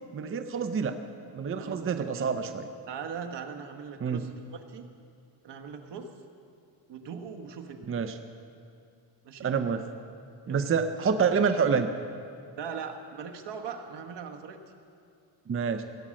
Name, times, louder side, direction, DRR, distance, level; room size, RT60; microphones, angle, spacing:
voice 1, 0.1-1.0 1.3-2.7 4.0-4.2 7.9-8.2 9.4-9.8 10.5-11.9 15.5-15.8, right 6 dB, 30° right, 8 dB, 0.6 m, -27 dB
voice 2, 1.6-2.3 2.9-4.9 5.4-6.1 6.9-7.9 9.2-9.5 10.5-10.7 12.6-14.6, right 6 dB, 65° right, 4 dB, 1.3 m, -40 dB
17.0 x 8.8 x 7.6 m, 2.4 s
cardioid pair, 130°, 45 cm